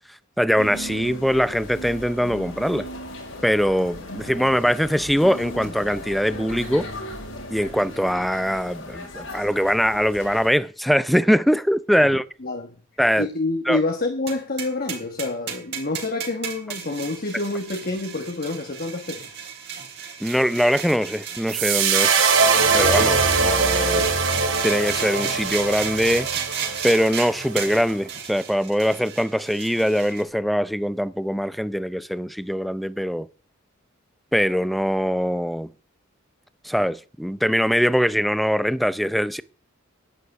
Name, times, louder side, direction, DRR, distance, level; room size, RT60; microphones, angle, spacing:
voice 1, 0.4-2.9 3.4-6.9 7.5-12.2 13.0-13.3 13.7-13.8 20.2-22.3 22.7-24.0 24.6-26.3 26.8-33.3 34.3-35.7 36.6-39.4, equal, ahead, 0.6 m, -22 dB
sound 1, 0.6-10.5, left 1 dB, 80° left, 5.9 m, -37 dB
voice 2, 12.4-12.8 13.2-19.3, left 2 dB, 50° left, 1.7 m, -27 dB
sound 2, 14.3-30.2, right 7 dB, 55° right, 3.8 m, -34 dB
sound 3, 21.5-27.8, right 5 dB, 75° right, 3.6 m, -22 dB
11.5 x 9.9 x 8.1 m
head